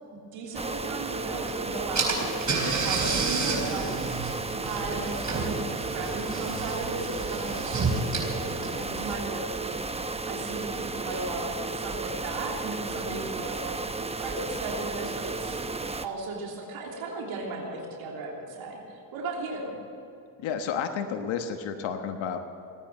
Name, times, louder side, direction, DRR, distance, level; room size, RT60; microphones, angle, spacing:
voice 1, 0.1-13.8 14.2-15.6 16.0-19.8, right 3 dB, 80° right, -1 dB, 3.2 m, -36 dB
sound 1, 0.5-16.1, right 3 dB, 15° right, 0.8 m, -33 dB
Car / Engine, 1.5-1.6 1.9-9.4, right 4 dB, 40° right, 4.4 m, -31 dB
voice 2, 20.4-22.4, left 7 dB, 75° left, 5 dB, 1.3 m, -31 dB
19.0 x 9.5 x 7.7 m, 2.9 s
cardioid pair, 85°, 46 cm